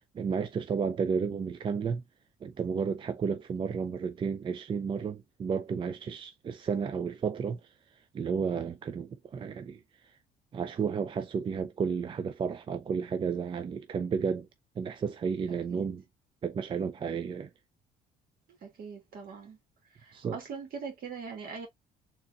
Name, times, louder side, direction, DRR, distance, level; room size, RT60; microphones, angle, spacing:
voice 1, 0.1-2.0 2.4-7.6 8.1-9.8 10.5-14.5 14.8-16.0 16.4-17.5 20.1-20.4, right 6 dB, 30° right, 0.4 m, -32 dB
voice 2, 18.6-19.6 20.0-21.7, right 5 dB, 60° right, 1.9 m, -41 dB
4.0 x 2.9 x 2.3 m
cardioid pair, 110°, 17 cm